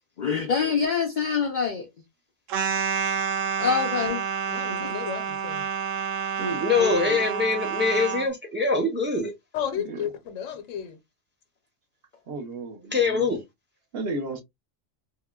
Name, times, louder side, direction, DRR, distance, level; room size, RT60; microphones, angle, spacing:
voice 1, 0.2-1.9 3.6-4.2 4.7-4.9 6.8-7.2, left 6 dB, 60° left, 0.5 m, -26 dB
sound 1, 2.5-8.3, right 7 dB, 85° right, 1.0 m, -29 dB
voice 2, 4.5-5.7 9.5-11.0, left 8 dB, 80° left, 1.1 m, -33 dB
voice 3, 6.6-9.3 12.9-13.4, left 4 dB, 15° right, 0.5 m, -23 dB
voice 4, 12.3-13.3 13.9-14.4, right 2 dB, 55° right, 0.9 m, -33 dB
3.7 x 2.1 x 2.3 m
omnidirectional pair, 1.3 m